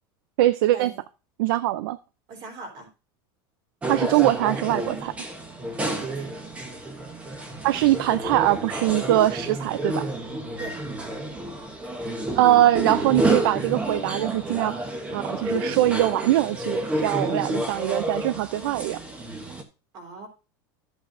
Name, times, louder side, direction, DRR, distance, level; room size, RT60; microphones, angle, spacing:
voice 1, 0.4-0.9 1.4-2.0 3.9-5.1 7.6-10.1 12.3-14.8 15.1-19.0, right 14 dB, 75° right, 15 dB, 0.5 m, -22 dB
voice 2, 2.3-2.9 5.8-6.3 10.6-10.7 19.9-20.3, right 3 dB, 35° right, 3 dB, 3.4 m, -39 dB
sound 1, 3.8-19.6, right 1 dB, 10° right, 1.0 m, -30 dB
12.0 x 8.0 x 2.6 m, 0.30 s
supercardioid pair, 175°, 12 cm